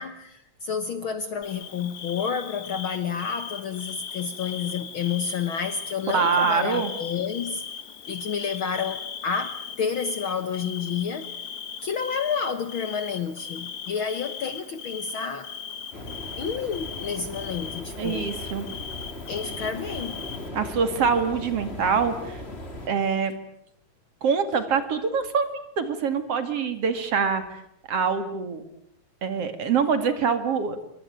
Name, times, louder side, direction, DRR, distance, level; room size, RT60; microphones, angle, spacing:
voice 1, 0.0-7.7 8.1-11.3 11.8-15.5 16.4-18.3 19.3-20.3, left 6 dB, 55° left, 1.6 m, -30 dB
Bird / Cricket, 1.4-20.5, left 7 dB, 75° left, 3.3 m, -38 dB
voice 2, 6.1-6.9 18.0-18.7 20.5-22.4 22.9-23.3 24.2-27.4 27.9-28.6 29.2-30.8, right 6 dB, 55° right, 3.0 m, -24 dB
sound 1, 15.9-22.9, left 2 dB, 20° left, 3.3 m, -38 dB
27.0 x 23.0 x 9.1 m
omnidirectional pair, 3.4 m